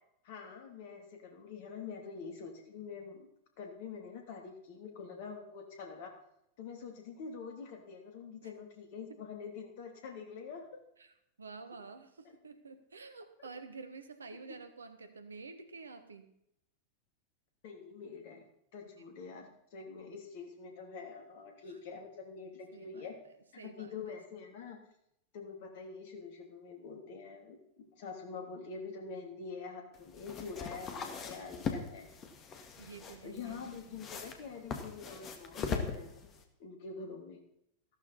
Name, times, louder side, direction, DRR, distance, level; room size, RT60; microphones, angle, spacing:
voice 1, 0.2-3.3 3.6-6.1 6.6-10.7 12.2-12.4 13.4-13.5 17.6-18.4 18.7-23.1 23.5-24.8 25.3-32.1 33.2-36.3 36.6-37.4, left 5 dB, 50° left, 4 dB, 3.0 m, -46 dB
voice 2, 11.4-16.3 21.7-21.8 22.7-24.2 32.8-34.1, right 4 dB, 75° right, 9 dB, 1.4 m, -50 dB
sound 1, 29.9-36.4, left 5 dB, 30° left, 2.0 m, -41 dB
14.5 x 13.0 x 4.2 m, 0.76 s
figure-of-eight pair, 90°, 0 cm